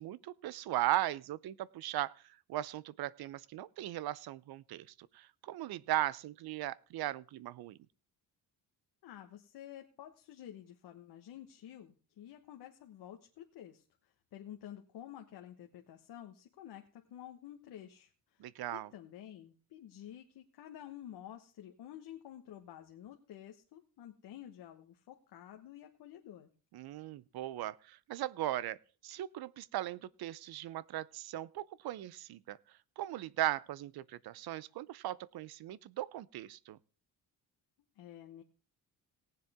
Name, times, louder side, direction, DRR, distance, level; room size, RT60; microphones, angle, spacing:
voice 1, 0.0-4.9 5.1-7.8 18.4-18.9 26.7-28.8 29.0-32.6 33.0-36.8, right 14 dB, 70° right, 0.7 m, -38 dB
voice 2, 9.0-26.5 38.0-38.4, left 11 dB, 80° left, 1.3 m, -51 dB
18.5 x 7.6 x 3.6 m
cardioid pair, 120°, 39 cm